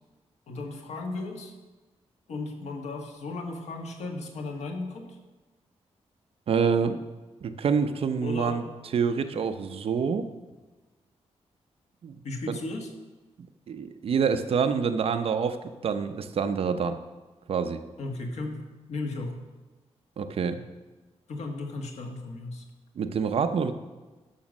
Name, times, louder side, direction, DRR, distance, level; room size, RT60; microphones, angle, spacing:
voice 1, 0.5-1.5 2.3-5.2 8.2-8.6 12.2-12.9 18.0-18.6 18.9-19.4 21.3-22.6, left 2 dB, 80° left, 3 dB, 1.5 m, -35 dB
voice 2, 6.5-7.0 7.4-8.6 8.9-10.3 12.0-12.2 13.7-15.6 15.8-17.0 17.5-17.8 20.2-20.7 23.0-23.7, right 6 dB, 60° right, 9 dB, 0.6 m, -26 dB
11.5 x 6.0 x 6.3 m, 1.2 s
wide cardioid pair, 175°, 11 cm